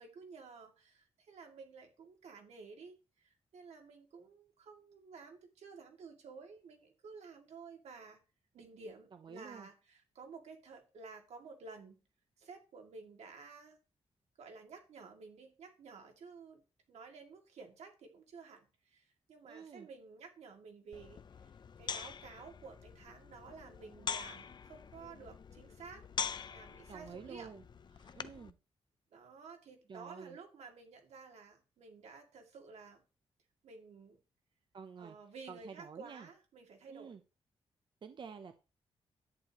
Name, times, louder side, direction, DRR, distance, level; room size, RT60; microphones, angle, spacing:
voice 1, 0.0-8.2 8.5-12.0 12.4-13.8 14.4-16.6 16.9-26.0 26.4-27.5 28.0-28.2 29.1-33.0 33.6-34.2 35.0-37.2, right 4 dB, 90° right, 3 dB, 2.3 m, -53 dB
voice 2, 9.2-9.7 19.5-19.9 26.9-27.6 28.1-28.5 29.9-30.4 34.7-35.2 35.5-36.3 36.9-37.2 38.0-38.6, right 6 dB, 45° right, 8 dB, 0.7 m, -49 dB
sound 1, 20.9-28.5, left 7 dB, 45° left, 0.5 m, -44 dB
10.5 x 9.2 x 3.0 m, 0.32 s
wide cardioid pair, 145°, 11 cm